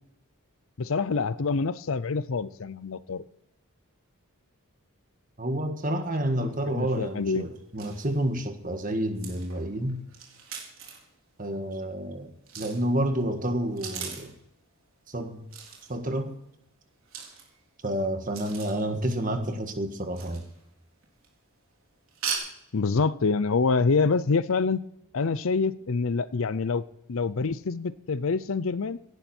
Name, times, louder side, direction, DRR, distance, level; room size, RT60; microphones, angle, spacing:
voice 1, 0.8-3.2 6.7-7.5 22.7-24.8 25.1-29.0, left 4 dB, 65° left, 17 dB, 0.6 m, -26 dB
voice 2, 5.4-10.0 11.4-12.3 12.6-14.3 15.1-15.5 15.9-16.3 17.8-20.4, right 1 dB, 35° right, 6 dB, 1.6 m, -29 dB
sound 1, 6.6-6.7 6.9-7.0 7.5-7.6 7.8-8.3 9.1-11.1 12.4-12.9 13.6-14.4 15.5-15.9 17.0-17.8 18.3-18.9 20.1-20.7 21.0-21.4 22.1-22.4, right 7 dB, 65° right, 4.0 m, -39 dB
17.0 x 12.0 x 4.5 m, 0.81 s
head